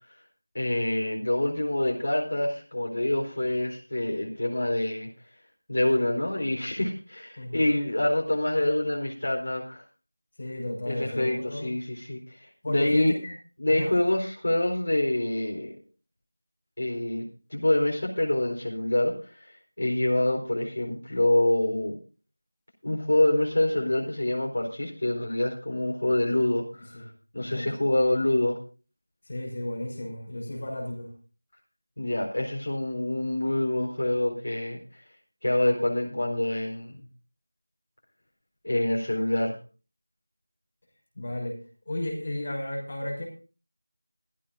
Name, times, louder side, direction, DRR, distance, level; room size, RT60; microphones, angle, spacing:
voice 1, 0.5-5.1 5.7-9.8 10.9-12.3 12.7-13.1 13.6-15.7 16.8-22.0 22.8-28.6 32.0-34.8 35.4-37.0 38.6-39.5, left 1 dB, 45° left, -1 dB, 4.3 m, -26 dB
voice 2, 7.4-7.7 10.4-11.7 12.6-13.3 13.7-13.9 26.9-27.0 27.4-27.7 29.3-31.1 41.2-41.6 41.9-43.3, left 1 dB, 25° left, 0 dB, 5.9 m, -33 dB
18.5 x 15.0 x 2.6 m, 0.35 s
figure-of-eight pair, 180°, 0 cm